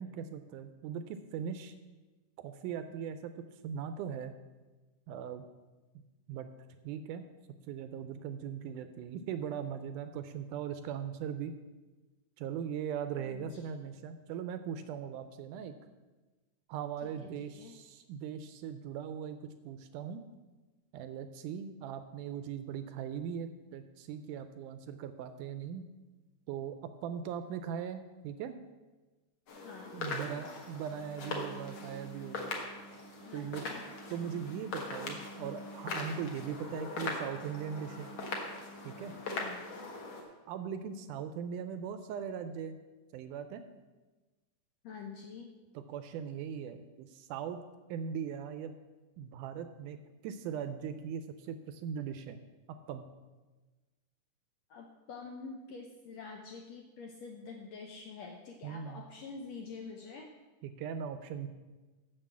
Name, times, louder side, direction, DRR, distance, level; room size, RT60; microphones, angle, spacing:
voice 1, 0.0-1.7 2.4-4.3 5.1-5.4 6.3-6.5 6.8-7.2 7.7-11.5 12.4-15.8 16.7-19.4 19.7-20.2 20.9-25.8 26.5-28.5 29.9-32.5 33.3-33.7 34.1-38.1 38.8-39.1 40.5-42.8 43.1-43.6 45.8-47.6 47.9-48.7 49.2-52.4 52.7-53.1 58.6-59.0 60.6-61.5, right 8 dB, 80° right, 10 dB, 1.9 m, -39 dB
voice 2, 13.2-13.7 17.0-17.3 17.6-17.7 29.6-30.5 33.2-33.9 39.3-39.6 44.8-45.5 54.7-60.3, left 4 dB, 75° left, 2 dB, 1.6 m, -47 dB
sound 1, 29.5-40.2, left 2 dB, 50° left, 1.8 m, -41 dB
7.6 x 7.2 x 7.3 m, 1.2 s
omnidirectional pair, 3.9 m